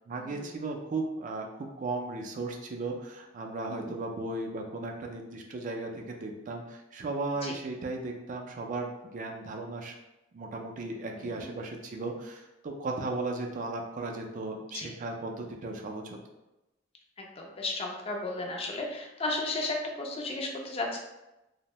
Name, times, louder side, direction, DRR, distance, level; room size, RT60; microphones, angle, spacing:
voice 1, 0.1-10.0 10.3-16.2, right 3 dB, 40° right, 2 dB, 0.3 m, -36 dB
voice 2, 11.2-11.5 14.7-14.9 17.2-21.0, left 2 dB, 30° left, 1 dB, 0.4 m, -34 dB
2.6 x 2.0 x 2.9 m, 0.96 s
head